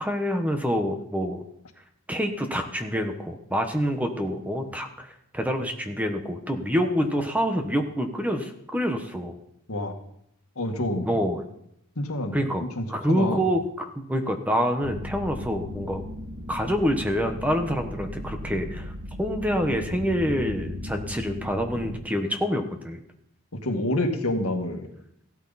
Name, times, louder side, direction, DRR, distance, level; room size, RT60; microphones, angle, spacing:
voice 1, 0.0-1.4 2.1-9.4 11.0-11.4 12.3-16.0 16.5-18.9 19.2-23.0, equal, 5° right, 5 dB, 1.1 m, -27 dB
voice 2, 10.6-11.1 12.0-13.4 23.6-24.9, left 1 dB, 75° left, 4 dB, 1.8 m, -28 dB
sound 1, 14.8-22.0, left 1 dB, 70° right, 1.9 m, -36 dB
15.5 x 12.5 x 4.1 m, 0.73 s
head